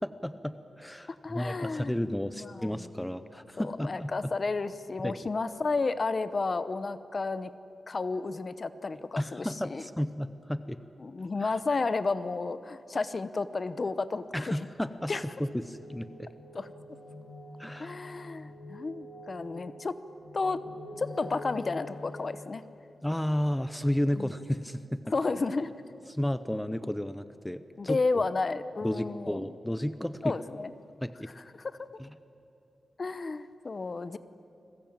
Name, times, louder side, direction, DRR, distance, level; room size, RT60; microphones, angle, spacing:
voice 1, 0.0-4.3 5.0-5.1 9.2-10.8 11.4-11.5 14.3-15.1 15.4-16.3 17.6-18.0 23.0-25.0 26.1-28.0 28.8-30.4 31.0-31.3 32.0-32.1, left 1 dB, 5° left, 12 dB, 0.7 m, -32 dB
voice 2, 1.2-2.0 2.4-2.9 3.6-7.5 7.9-9.8 11.0-14.7 15.1-15.2 16.5-16.7 17.8-19.9 20.3-20.6 21.0-22.6 24.2-24.3 25.1-25.7 27.8-29.5 30.2-30.7 31.6-31.8 33.0-34.2, left 3 dB, 35° left, 13 dB, 0.8 m, -32 dB
sound 1, 14.8-22.3, left 1 dB, 75° left, 6.7 m, -46 dB
29.5 x 21.0 x 8.9 m, 2.8 s
wide cardioid pair, 165°, 0 cm